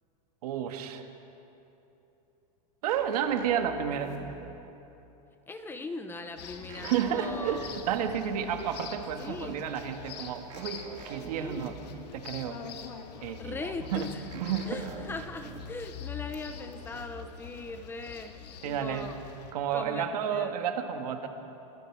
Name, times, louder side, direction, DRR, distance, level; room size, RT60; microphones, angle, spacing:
voice 1, 0.4-1.1 2.8-4.2 6.8-11.7 12.1-12.6 13.2-14.8 18.6-19.1 19.5-21.3, right 8 dB, 70° right, 5 dB, 1.9 m, -31 dB
sound 1, 2.9-4.7 6.7-8.4 10.5-12.0 14.3-15.9, right 4 dB, 30° right, 2.7 m, -45 dB
voice 2, 5.5-7.7 9.2-9.7 11.3-11.8 13.4-14.2 14.7-19.1 19.7-20.6, left 3 dB, 10° left, 8 dB, 0.8 m, -40 dB
sound 2, 6.4-19.5, left 8 dB, 85° left, 2.0 m, -45 dB
28.0 x 20.5 x 4.9 m, 3.0 s
supercardioid pair, 160°, 21 cm